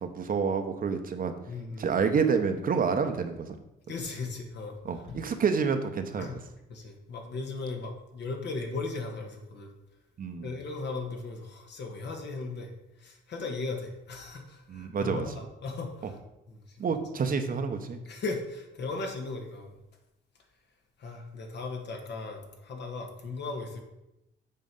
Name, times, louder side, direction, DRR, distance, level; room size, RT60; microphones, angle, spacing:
voice 1, 0.0-1.3 1.8-3.6 4.8-6.3 10.2-10.5 14.7-15.3 16.8-18.0, right 5 dB, 45° right, 7 dB, 0.9 m, -28 dB
voice 2, 1.5-2.0 3.9-4.8 5.1-5.2 6.2-6.4 6.7-9.7 10.4-12.7 13.0-16.2 16.5-17.0 18.0-19.8 21.0-23.8, left 3 dB, 60° left, 3 dB, 1.5 m, -37 dB
7.6 x 4.6 x 5.3 m, 0.92 s
cardioid pair, 90°, 20 cm